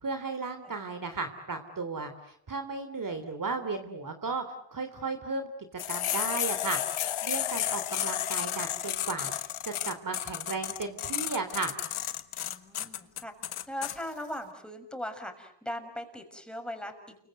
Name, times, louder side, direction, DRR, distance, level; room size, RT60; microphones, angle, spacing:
voice 1, 0.0-4.4 4.7-5.5 5.9-6.8 7.2-11.7, right 4 dB, 40° right, 7 dB, 3.3 m, -35 dB
sound 1, 5.8-13.9, left 11 dB, 90° left, 1.6 m, -32 dB
voice 2, 12.4-13.3 13.7-17.2, equal, ahead, 5 dB, 6.3 m, -39 dB
29.5 x 25.0 x 8.1 m, 0.70 s
cardioid pair, 90°, 48 cm